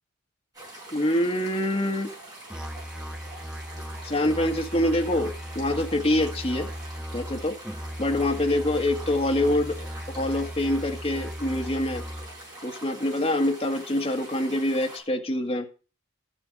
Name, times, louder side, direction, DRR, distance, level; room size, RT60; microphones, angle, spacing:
sound 1, 0.5-15.0, right 1 dB, 20° right, 6.6 m, -44 dB
voice 1, 0.9-2.1 4.0-6.7 7.1-7.6 8.0-9.9 10.1-12.0 12.6-15.7, left 1 dB, 30° left, 2 dB, 1.5 m, -25 dB
Musical instrument, 2.5-12.5, equal, 5° right, 0.5 m, -37 dB
13.0 x 7.0 x 4.9 m, 0.34 s
head